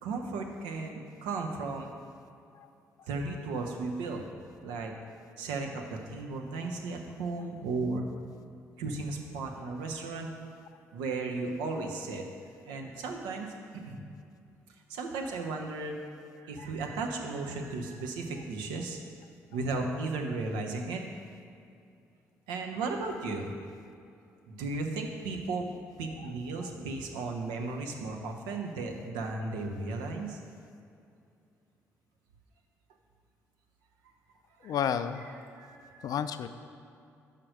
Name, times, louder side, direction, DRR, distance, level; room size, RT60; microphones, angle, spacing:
voice 1, 0.0-1.9 3.1-4.2 4.6-4.9 5.4-8.1 8.8-10.3 10.9-12.3 12.7-14.0 14.9-16.0 16.4-19.0 19.5-21.0 22.5-23.5 24.5-25.7 26.0-30.4 34.6-34.7 35.3-36.1, right 3 dB, 70° right, 2 dB, 0.8 m, -35 dB
voice 2, 34.6-35.3 36.0-36.5, left 8 dB, 55° left, 11 dB, 0.4 m, -31 dB
5.8 x 5.2 x 6.4 m, 2.5 s
hypercardioid pair, 45°, 8 cm